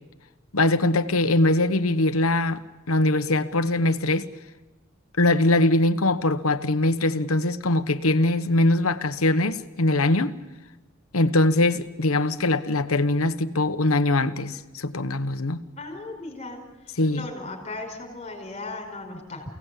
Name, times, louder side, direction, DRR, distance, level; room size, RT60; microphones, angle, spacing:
voice 1, 0.5-4.3 5.2-10.3 11.1-15.6 17.0-17.3, left 2 dB, 80° left, 1.2 m, -22 dB
voice 2, 15.8-19.4, left 2 dB, 35° left, 5.1 m, -37 dB
29.0 x 17.5 x 8.4 m
head